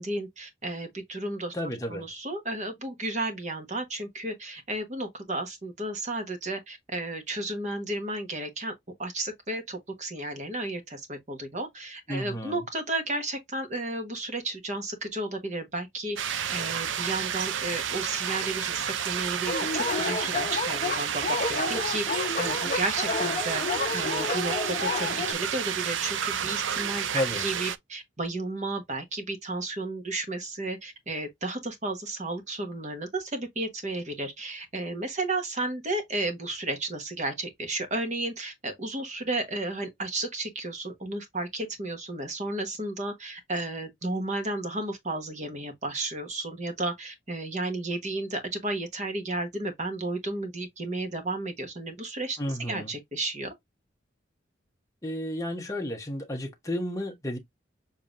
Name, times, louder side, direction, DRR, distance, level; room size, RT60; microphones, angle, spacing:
voice 1, 0.0-1.5 1.9-8.7 9.0-23.6 23.9-53.5, right 2 dB, 35° right, 1.2 m, -33 dB
voice 2, 1.5-2.0 12.1-12.6 27.1-27.4 52.4-52.9 55.0-57.4, left 1 dB, 15° left, 1.0 m, -32 dB
sound 1, 16.2-27.8, right 8 dB, 80° right, 0.5 m, -30 dB
Dog, 19.5-25.3, left 3 dB, 35° left, 0.7 m, -30 dB
7.0 x 2.9 x 2.5 m
head